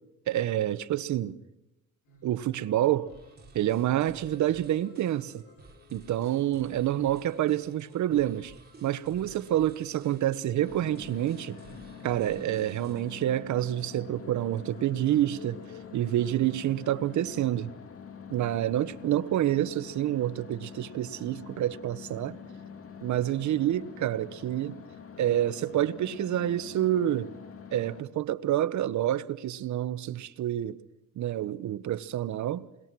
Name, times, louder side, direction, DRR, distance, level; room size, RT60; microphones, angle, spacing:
voice 1, 0.3-1.4 2.2-3.1 3.5-5.4 5.9-8.5 8.8-11.6 12.0-15.6 15.9-17.7 18.3-22.4 23.0-24.8 25.2-27.3 27.7-30.8 31.2-32.7, right 12 dB, 70° right, 1.1 m, -28 dB
sound 1, 2.0-18.1, left 2 dB, 85° left, 7.7 m, -55 dB
sound 2, 3.1-13.1, right 3 dB, 30° right, 3.8 m, -53 dB
sound 3, 10.5-28.0, left 6 dB, 50° left, 2.5 m, -46 dB
28.5 x 21.5 x 6.1 m
cardioid pair, 90°, 30 cm